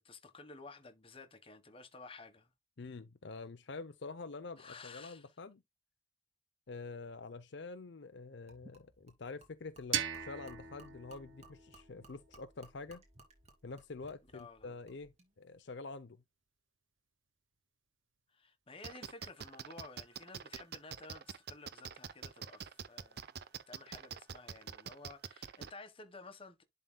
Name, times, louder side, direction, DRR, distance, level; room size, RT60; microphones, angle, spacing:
voice 1, 0.0-2.5 4.6-5.3 14.3-14.8 18.3-23.3 23.7-26.6, left 3 dB, 30° left, 1.3 m, -53 dB
voice 2, 2.8-5.6 6.7-13.0 13.6-16.2, left 3 dB, 65° left, 0.6 m, -47 dB
Gurgling / Liquid, 8.5-15.3, right 2 dB, 35° right, 2.7 m, -61 dB
sound 1, 9.9-12.8, right 9 dB, 85° right, 0.9 m, -40 dB
sound 2, 18.8-25.7, right 7 dB, 55° right, 0.6 m, -45 dB
11.5 x 3.8 x 2.2 m
head